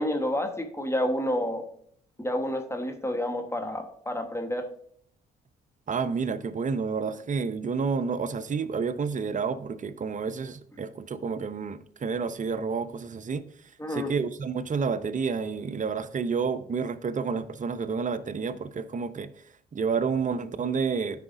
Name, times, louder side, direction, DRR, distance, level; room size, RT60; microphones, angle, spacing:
voice 1, 0.0-1.6 2.2-4.6 13.8-14.1, left 1 dB, 15° left, 1.3 m, -29 dB
voice 2, 5.9-13.4 13.9-19.3 19.7-21.2, right 5 dB, 35° right, 0.7 m, -30 dB
13.0 x 4.9 x 2.7 m
hypercardioid pair, 55°, 21 cm